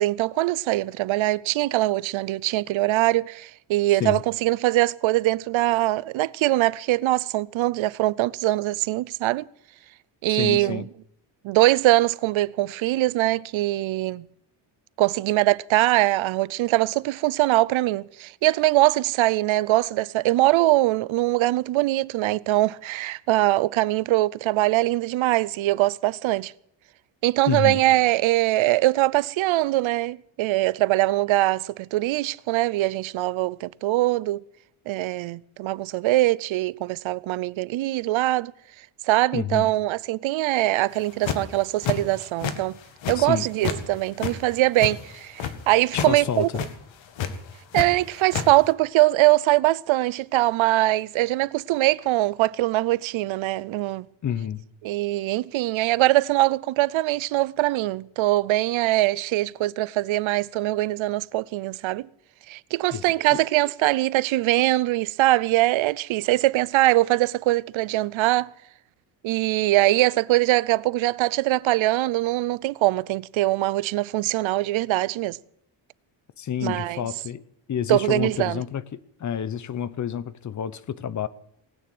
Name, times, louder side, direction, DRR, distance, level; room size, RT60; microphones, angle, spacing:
voice 1, 0.0-9.4 10.2-10.8 11.4-14.2 15.0-26.5 27.2-34.4 34.9-38.5 39.0-42.8 43.1-46.5 47.7-54.1 54.8-62.1 62.5-68.5 69.2-75.4 76.6-77.0 77.9-78.6, right 17 dB, 75° right, 0.6 m, -22 dB
voice 2, 10.3-10.9 27.5-27.8 39.3-39.7 43.2-43.5 45.9-46.4 54.2-54.6 62.9-63.0 63.3-63.4 76.4-77.4 77.7-78.8 79.2-81.3, left 9 dB, 40° left, 0.7 m, -28 dB
sound 1, 41.0-41.5 41.8-42.6 42.8-43.8 44.1-45.5 45.9-46.1 46.4-46.7 47.2-47.9 48.1-48.5, left 8 dB, 70° left, 1.9 m, -29 dB
19.0 x 9.4 x 7.8 m
cardioid pair, 175°, 48 cm